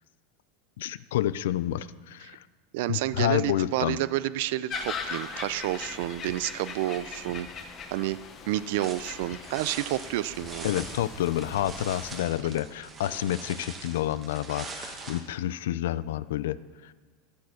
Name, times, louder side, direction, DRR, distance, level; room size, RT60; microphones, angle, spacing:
voice 1, 0.8-2.4 2.9-4.0 10.6-16.6 16.8-16.9, left 12 dB, 85° left, 17 dB, 0.4 m, -29 dB
voice 2, 2.7-8.2 8.5-10.7, right 15 dB, 65° right, 16 dB, 0.4 m, -30 dB
sound 1, 4.7-12.2, left 5 dB, 25° left, 0.9 m, -40 dB
sound 2, 8.8-15.2, right 4 dB, 20° right, 1.3 m, -43 dB
12.0 x 8.4 x 6.4 m, 1.5 s
supercardioid pair, 155°, 0 cm